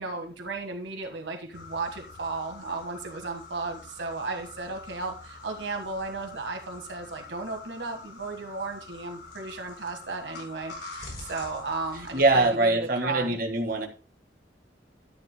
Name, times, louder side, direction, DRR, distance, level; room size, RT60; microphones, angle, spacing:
voice 1, 0.0-13.4, right 3 dB, 80° right, 1.6 m, -35 dB
sound 1, 1.5-12.5, left 3 dB, 70° left, 4.2 m, -45 dB
voice 2, 12.1-13.9, right 2 dB, 50° right, 1.8 m, -23 dB
12.0 x 10.0 x 2.2 m
head